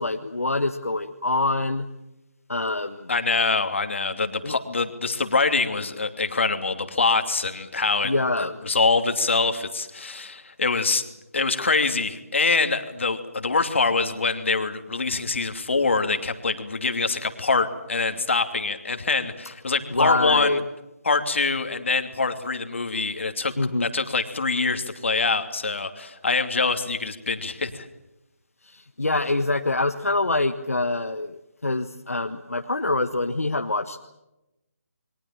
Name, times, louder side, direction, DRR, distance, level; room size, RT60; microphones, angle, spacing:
voice 1, 0.0-1.9 2.5-3.1 4.4-4.6 8.0-8.6 19.9-20.6 23.6-23.9 28.6-31.4 31.6-34.0, left 2 dB, 75° left, 5 dB, 1.6 m, -25 dB
voice 2, 3.1-8.1 8.4-11.0 11.3-20.6 21.0-23.5 23.8-27.9, left 4 dB, 55° left, 8 dB, 2.8 m, -24 dB
29.0 x 23.0 x 7.4 m, 0.94 s
figure-of-eight pair, 155°, 8 cm